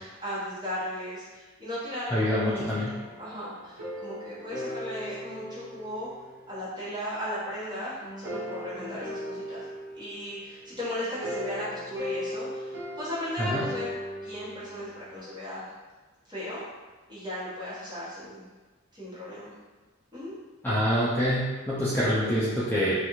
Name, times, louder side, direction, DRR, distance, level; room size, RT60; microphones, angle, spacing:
voice 1, 0.0-2.7 3.2-6.1 6.5-9.6 9.9-13.9 14.2-15.7 16.3-16.6 17.1-18.4 18.9-19.5 20.1-20.3, left 1 dB, 20° right, -11 dB, 1.2 m, -36 dB
voice 2, 2.1-2.9 13.4-13.6 20.6-23.1, equal, 10° left, -10 dB, 0.4 m, -26 dB
sound 1, 2.2-6.9 8.0-15.2, equal, 70° right, 0.7 m, -38 dB
2.5 x 2.4 x 3.0 m, 1.2 s
head